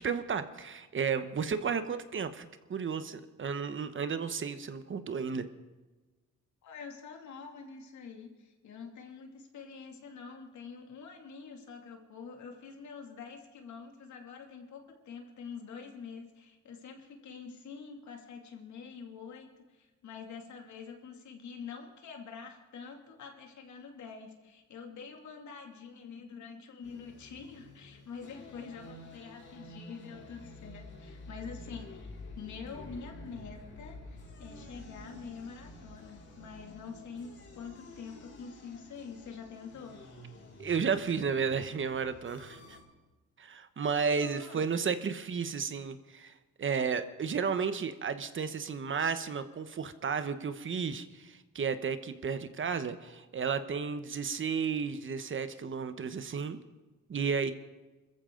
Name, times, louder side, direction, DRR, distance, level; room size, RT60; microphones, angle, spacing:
voice 1, 0.0-5.5 40.6-42.8 43.4-46.3 46.6-56.6 57.1-57.5, right 6 dB, 40° right, 11 dB, 1.1 m, -33 dB
voice 2, 6.6-40.0 44.0-44.7, left 5 dB, 70° left, 3 dB, 2.6 m, -46 dB
sound 1, 26.8-42.8, left 2 dB, 50° left, 5.5 m, -50 dB
25.0 x 14.5 x 3.9 m, 1.2 s
cardioid pair, 90°, 30 cm